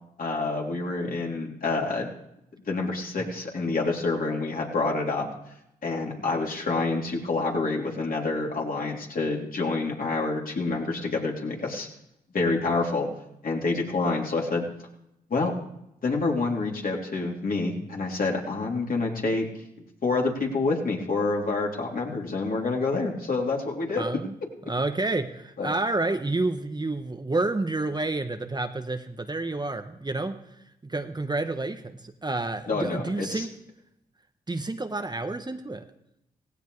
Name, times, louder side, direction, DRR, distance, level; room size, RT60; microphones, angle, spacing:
voice 1, 0.2-2.1 2.7-5.3 5.8-11.9 12.3-13.1 13.4-14.7 15.3-15.5 16.0-19.5 20.0-24.0 25.6-25.7 32.7-33.5, left 3 dB, 55° left, -1 dB, 3.4 m, -27 dB
voice 2, 24.0-24.3 24.7-30.4 30.8-33.5 34.5-35.8, right 2 dB, 25° right, 7 dB, 1.2 m, -29 dB
17.0 x 16.5 x 3.4 m, 0.82 s
supercardioid pair, 45°, 18 cm